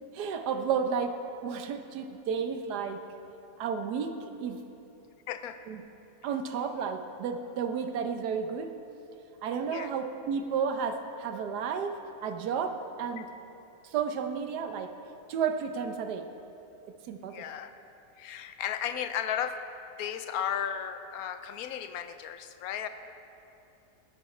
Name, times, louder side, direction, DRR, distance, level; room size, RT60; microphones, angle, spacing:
voice 1, 0.1-1.2 1.4-3.0 3.6-4.6 5.7-5.8 6.2-8.7 9.4-13.2 13.9-14.9 15.3-16.3 17.1-17.3, right 6 dB, 85° right, 7 dB, 1.3 m, -32 dB
voice 2, 17.3-17.7 18.2-19.5 20.0-22.9, left 9 dB, 75° left, 10 dB, 1.0 m, -34 dB
16.5 x 10.5 x 3.2 m, 2.8 s
omnidirectional pair, 1.7 m